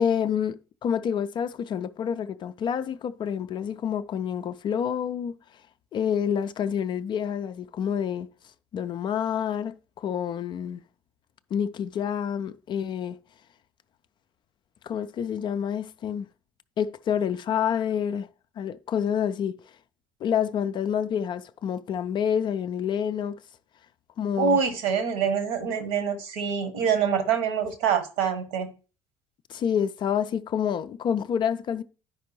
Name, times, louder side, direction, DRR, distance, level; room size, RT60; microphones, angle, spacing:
voice 1, 0.0-5.4 5.9-8.3 8.7-10.8 11.5-13.2 14.8-16.3 16.8-18.3 18.6-19.6 20.2-23.4 24.2-24.6 29.5-31.8, left 8 dB, 35° left, 0.4 m, -28 dB
voice 2, 24.3-28.7, right 7 dB, 60° right, 1.2 m, -25 dB
10.5 x 5.0 x 3.0 m
figure-of-eight pair, 60°, 14 cm